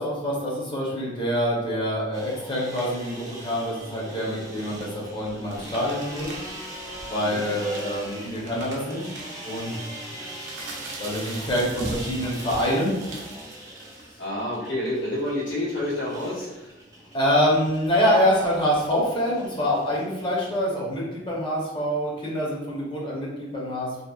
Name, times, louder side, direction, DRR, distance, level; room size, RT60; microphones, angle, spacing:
voice 1, 0.0-6.3 7.1-9.1 9.4-9.8 11.0-12.9 17.1-24.0, equal, 30° left, -5 dB, 0.7 m, -25 dB
sound 1, 2.1-20.6, right 1 dB, 20° right, 0.5 m, -41 dB
sound 2, 2.6-3.0 3.9-6.5 6.8-6.9 7.3-14.3, right 2 dB, 85° right, 0.5 m, -40 dB
voice 2, 14.2-16.7, left 1 dB, 75° left, -9 dB, 1.3 m, -29 dB
2.7 x 2.1 x 2.3 m, 0.99 s
head